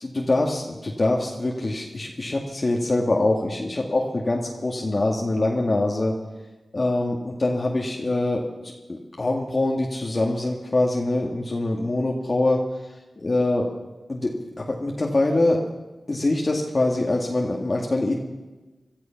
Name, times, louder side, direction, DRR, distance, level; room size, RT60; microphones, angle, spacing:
voice 1, 0.0-6.1 6.7-8.4 8.9-13.7 14.1-15.6 16.1-18.2, left 2 dB, 50° left, -1 dB, 2.0 m, -24 dB
17.5 x 13.0 x 5.9 m, 1.2 s
cardioid pair, 40°, 0 cm